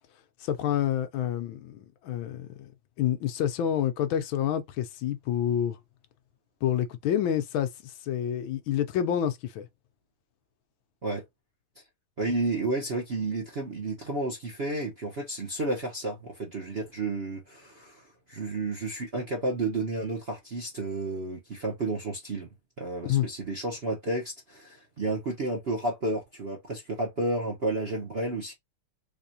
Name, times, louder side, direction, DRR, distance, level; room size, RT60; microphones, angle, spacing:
voice 1, 0.4-2.7 3.0-5.8 6.6-9.7 23.0-23.3, left 10 dB, 75° left, 1.4 m, -28 dB
voice 2, 12.2-22.5 22.8-28.5, right 2 dB, 50° right, 0.7 m, -31 dB
3.6 x 3.3 x 2.7 m
omnidirectional pair, 2.4 m